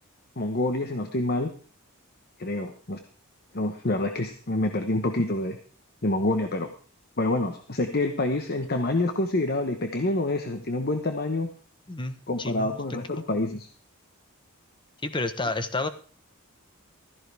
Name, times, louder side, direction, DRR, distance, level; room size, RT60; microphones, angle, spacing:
voice 1, 0.4-1.5 2.4-3.0 3.5-5.6 6.0-6.7 7.2-11.5 12.3-13.7, left 2 dB, 45° left, 6 dB, 1.2 m, -27 dB
voice 2, 11.9-12.8 13.1-13.2 15.0-15.9, left 2 dB, 20° left, 10 dB, 1.1 m, -30 dB
15.5 x 14.0 x 3.5 m, 0.40 s
head